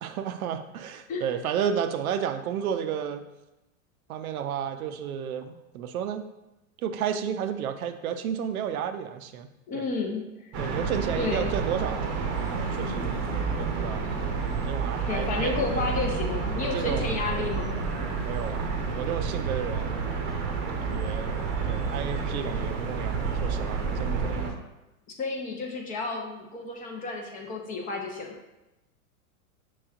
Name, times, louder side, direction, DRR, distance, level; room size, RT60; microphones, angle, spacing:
voice 1, 0.0-3.3 4.1-6.2 6.8-9.5 9.7-9.8 10.6-12.1 12.5-13.2 13.6-14.0 14.6-15.8 16.6-17.2 18.2-20.1 20.8-21.3 21.7-24.5, right 8 dB, 80° right, 9 dB, 0.5 m, -32 dB
voice 2, 9.7-10.2 11.2-11.5 15.1-17.7 25.2-28.4, left 3 dB, 20° left, 1 dB, 0.4 m, -31 dB
sound 1, 10.5-24.5, right 4 dB, 35° right, 0.7 m, -29 dB
5.9 x 3.0 x 2.4 m, 0.96 s
hypercardioid pair, 120°, 42 cm